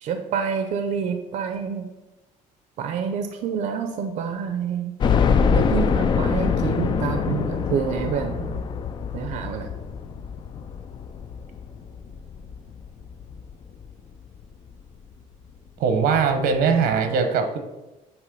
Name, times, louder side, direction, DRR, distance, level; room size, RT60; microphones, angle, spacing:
voice 1, 0.0-1.9 2.8-4.9 5.5-8.6 9.1-9.7, right 7 dB, 55° right, 6 dB, 0.6 m, -27 dB
sound 1, 5.0-13.9 14.4-14.5 14.9-15.0 16.2-16.3 16.5-16.6, left 6 dB, 30° left, 0.3 m, -24 dB
voice 2, 15.8-17.6, right 5 dB, 90° right, 6 dB, 1.0 m, -21 dB
8.2 x 3.1 x 5.3 m, 1.0 s
cardioid pair, 165°, 15 cm